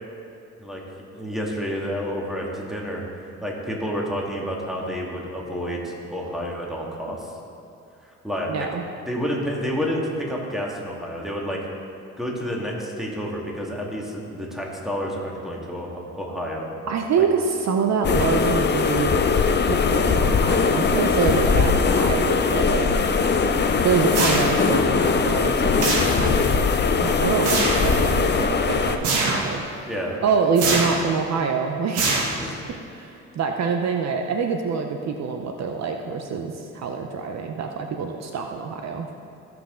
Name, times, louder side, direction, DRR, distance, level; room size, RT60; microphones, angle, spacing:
voice 1, 1.1-3.0 3.4-7.3 8.2-8.5 9.1-11.6 12.2-16.7 17.2-17.3 29.9-30.2 32.4-32.5, equal, ahead, -3 dB, 2.0 m, -29 dB
voice 2, 8.5-8.8 16.9-19.1 19.4-22.9 23.8-25.9 26.1-26.5 27.0-29.6 30.2-32.1 32.9-39.1, right 5 dB, 60° right, 4 dB, 0.8 m, -25 dB
sound 1, 18.0-29.0, left 5 dB, 35° left, 0.7 m, -20 dB
sound 2, 24.1-24.8 25.8-26.5 27.4-27.9 29.0-29.6 30.6-31.1 31.9-32.6, right 3 dB, 80° right, 1.5 m, -24 dB
15.0 x 6.0 x 3.8 m, 2.7 s
cardioid pair, 90°, 30 cm